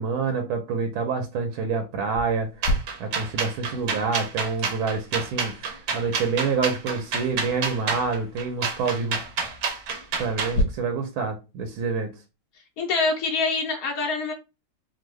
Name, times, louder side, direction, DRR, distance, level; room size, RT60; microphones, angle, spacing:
voice 1, 0.0-2.7 3.0-9.2 10.2-12.1, right 5 dB, 80° right, 5 dB, 1.5 m, -27 dB
sound 1, 2.2-10.6, left 2 dB, 55° left, 1.2 m, -36 dB
sound 2, 2.6-10.6, right 5 dB, 65° right, 1.0 m, -29 dB
voice 2, 12.8-14.3, left 3 dB, 75° left, 1 dB, 0.8 m, -25 dB
3.5 x 2.2 x 3.1 m, 0.27 s
omnidirectional pair, 2.4 m